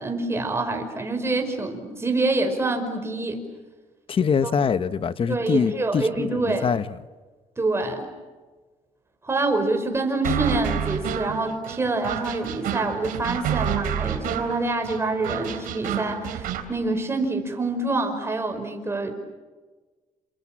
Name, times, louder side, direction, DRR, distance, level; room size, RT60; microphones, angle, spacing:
voice 1, 0.0-3.4 4.4-4.5 5.3-6.7 7.6-8.1 9.2-19.1, right 2 dB, 20° right, 5.3 m, -26 dB
voice 2, 4.1-7.0, left 6 dB, 40° left, 1.1 m, -24 dB
sound 1, 10.2-16.7, right 8 dB, 90° right, 3.5 m, -29 dB
29.0 x 27.5 x 7.4 m
cardioid pair, 125°, 14 cm